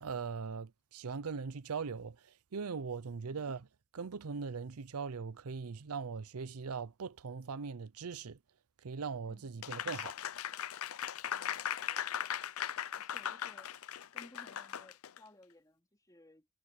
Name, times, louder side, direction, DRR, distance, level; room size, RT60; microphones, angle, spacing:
voice 1, 0.0-2.2 2.5-3.7 3.9-8.4 8.8-10.1, right 5 dB, 90° right, 0.6 m, -40 dB
voice 2, 3.1-3.4 9.3-9.9 11.3-12.4 12.9-13.8 14.1-16.5, left 1 dB, 15° left, 3.8 m, -61 dB
Applause, 9.6-15.2, left 10 dB, 75° left, 0.6 m, -39 dB
head